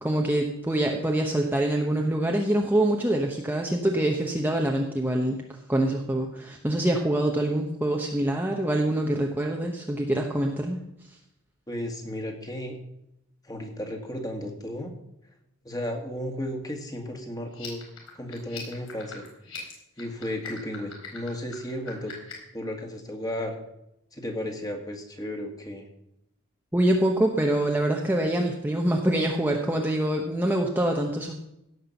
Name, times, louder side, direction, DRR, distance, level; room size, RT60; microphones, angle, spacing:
voice 1, 0.0-5.4 5.7-10.8 26.7-31.3, right 1 dB, 10° right, 1 dB, 0.9 m, -25 dB
voice 2, 11.7-12.8 13.4-14.9 15.7-17.8 18.2-19.3 20.0-22.1 22.5-23.6 24.1-25.8, left 1 dB, 15° left, 3 dB, 1.9 m, -34 dB
sound 1, 17.5-22.5, left 6 dB, 65° left, 4.6 m, -43 dB
16.5 x 6.0 x 7.0 m, 0.82 s
head